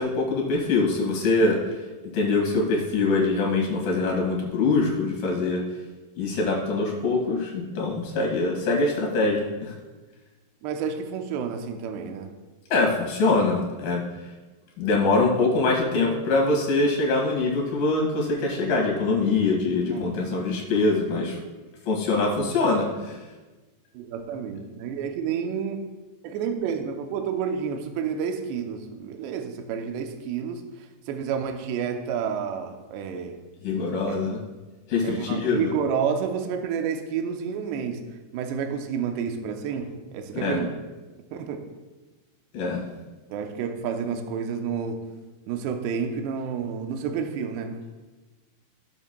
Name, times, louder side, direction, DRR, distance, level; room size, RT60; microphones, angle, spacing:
voice 1, 0.0-1.6 2.1-5.6 6.2-9.7 12.7-14.0 14.8-21.4 21.9-23.2 33.6-34.4 34.9-35.7 40.3-40.6 42.5-42.8, left 3 dB, 60° left, -1 dB, 2.9 m, -23 dB
voice 2, 10.6-12.3 19.9-20.1 23.9-25.9 26.2-33.4 34.1-34.2 35.0-38.0 38.3-40.7 41.3-41.7 43.3-45.0 45.5-47.8, right 7 dB, 80° right, 5 dB, 2.7 m, -30 dB
16.5 x 7.0 x 2.2 m, 1.2 s
omnidirectional pair, 5.2 m